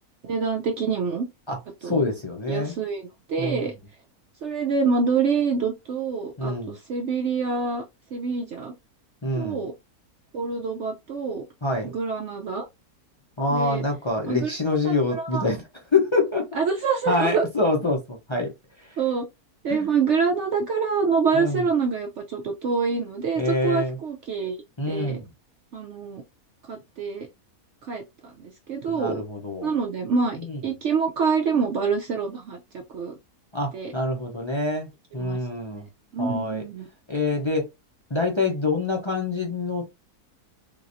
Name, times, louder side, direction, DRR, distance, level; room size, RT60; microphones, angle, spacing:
voice 1, 0.2-1.3 1.8-2.0 2.5-3.7 4.4-7.8 8.1-8.7 9.3-9.7 10.3-11.4 11.8-12.7 13.5-13.8 14.3-14.5 14.8-15.5 16.5-17.5 19.0-19.2 19.6-25.2 25.7-26.2 26.7-27.3 27.9-29.2 29.6-33.1 33.7-33.9 35.2-35.4 36.1-36.9, right 5 dB, 65° right, 0.8 m, -26 dB
voice 2, 1.5-2.8 3.4-3.6 6.4-6.8 9.2-9.6 11.6-11.9 13.4-15.6 15.9-16.5 17.1-18.5 18.8-19.0 19.7-19.9 21.3-21.6 23.4-24.0 24.8-25.3 28.9-29.7 30.4-30.6 33.5-35.9 36.2-36.6 37.1-37.7 38.1-39.8, left 2 dB, 35° left, 0.4 m, -26 dB
3.8 x 2.9 x 2.5 m
omnidirectional pair, 1.6 m